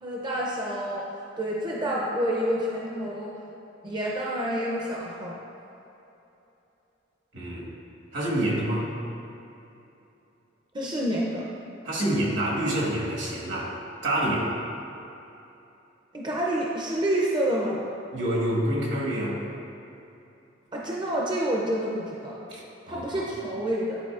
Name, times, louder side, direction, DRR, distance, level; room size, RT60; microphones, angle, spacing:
voice 1, 0.0-1.1 1.4-3.3 3.8-5.4 10.7-11.5 16.1-17.8 20.7-22.4 22.9-24.0, right 1 dB, 25° right, -4 dB, 0.6 m, -28 dB
voice 2, 7.3-7.7 8.1-8.9 11.8-13.7 14.0-14.5 18.1-19.4 22.5-23.1, right 1 dB, 70° right, -4 dB, 1.5 m, -27 dB
11.0 x 3.8 x 2.4 m, 2.9 s
head